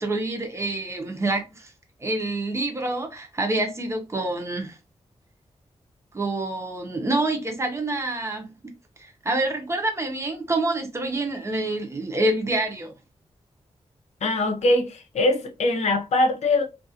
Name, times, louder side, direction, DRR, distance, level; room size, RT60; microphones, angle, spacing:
voice 1, 0.0-1.7 2.0-4.8 6.1-8.5 9.0-12.9, right 2 dB, 25° right, 0.7 m, -27 dB
voice 2, 14.2-16.6, left 2 dB, 80° left, 0.6 m, -22 dB
2.4 x 2.3 x 2.7 m
wide cardioid pair, 115°, 11 cm